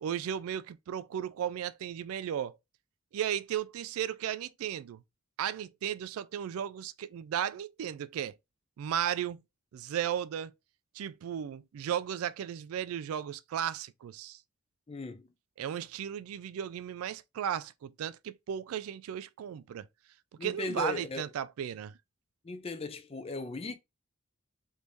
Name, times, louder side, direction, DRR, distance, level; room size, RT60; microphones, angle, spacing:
voice 1, 0.0-2.6 3.1-5.0 5.4-8.3 8.8-9.4 9.7-10.5 10.9-14.4 15.6-19.9 20.4-22.0, right 9 dB, 85° right, 0.3 m, -35 dB
voice 2, 14.9-15.3 20.4-21.3 22.4-23.8, left 3 dB, 25° left, 0.4 m, -37 dB
3.4 x 2.6 x 3.0 m
head